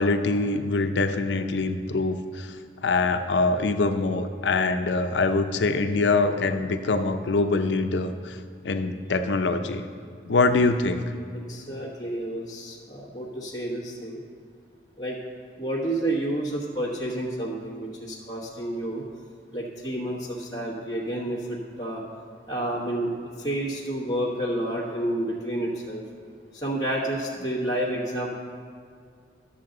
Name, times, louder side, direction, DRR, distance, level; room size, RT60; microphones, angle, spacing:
voice 1, 0.0-2.5 2.8-8.4 8.6-9.8 10.3-11.0, left 3 dB, 90° left, 8 dB, 0.6 m, -24 dB
voice 2, 11.5-14.2 15.0-15.2 15.6-19.0 19.5-22.0 22.5-26.0 26.5-28.3, right 1 dB, 20° left, -7 dB, 1.2 m, -30 dB
12.0 x 6.9 x 3.8 m, 2.2 s
head